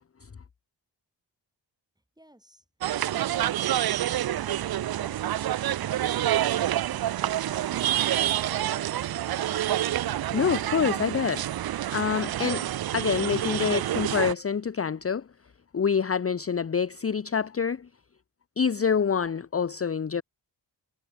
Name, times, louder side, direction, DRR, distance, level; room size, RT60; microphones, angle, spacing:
voice 1, 2.2-2.7 3.0-5.5, right 1 dB, 10° right, 7.1 m, -54 dB
sound 1, 2.8-14.3, right 12 dB, 55° right, 0.5 m, -28 dB
voice 2, 10.3-15.3 15.7-17.9 18.6-20.2, left 6 dB, 30° left, 0.7 m, -27 dB
wide cardioid pair, 80°, 44 cm